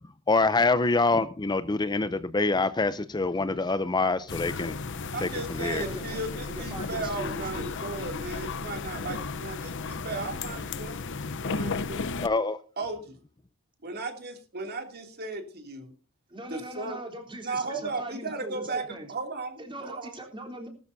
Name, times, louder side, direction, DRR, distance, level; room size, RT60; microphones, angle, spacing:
voice 1, 0.3-4.8 5.2-5.8 12.2-12.6, left 3 dB, 20° left, 12 dB, 0.5 m, -25 dB
sound 1, 4.3-12.3, left 4 dB, 60° left, 0.8 m, -34 dB
voice 2, 5.1-11.1 11.4-12.2 12.8-13.2 13.8-15.9 16.5-17.0 17.4-20.1, right 3 dB, 50° right, 5 dB, 2.7 m, -36 dB
voice 3, 5.7-6.2 6.5-7.9 16.3-19.1 19.6-20.7, right 1 dB, 25° right, 2 dB, 3.6 m, -41 dB
19.0 x 13.0 x 2.7 m, 0.35 s
head